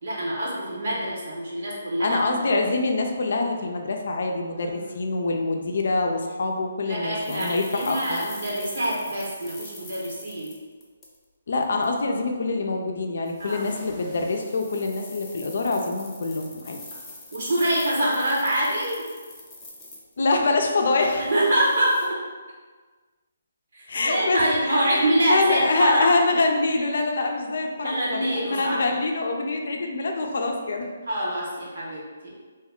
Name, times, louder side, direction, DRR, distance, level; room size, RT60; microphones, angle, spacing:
voice 1, 0.0-2.2 4.6-5.1 6.8-10.6 13.4-13.7 17.3-19.1 21.2-22.2 23.7-26.1 27.8-28.8 31.1-32.3, right 1 dB, 65° right, -5 dB, 1.1 m, -25 dB
voice 2, 2.0-8.2 11.5-16.8 20.2-21.2 23.9-24.4 24.7-25.0 25.3-30.9, left 3 dB, 65° left, 3 dB, 0.4 m, -25 dB
sound 1, 7.2-11.2 11.6-11.8 13.3-20.4 20.8-22.1, left 2 dB, 10° left, 0.5 m, -44 dB
2.8 x 2.3 x 3.5 m, 1.4 s
hypercardioid pair, 150°, 0 cm